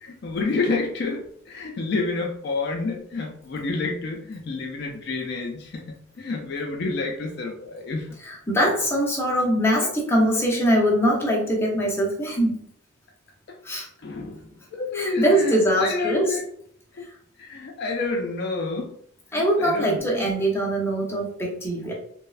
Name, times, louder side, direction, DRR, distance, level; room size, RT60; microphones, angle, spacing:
voice 1, 0.0-8.1 13.5-13.6 14.0-14.4 14.7-16.5 16.9-17.1 17.4-18.9 19.3-20.3, left 3 dB, 55° left, 2 dB, 0.3 m, -29 dB
voice 2, 8.2-12.6 13.6-13.9 14.9-16.4 19.3-21.9, equal, 10° left, -3 dB, 0.6 m, -22 dB
3.1 x 2.0 x 2.3 m, 0.65 s
head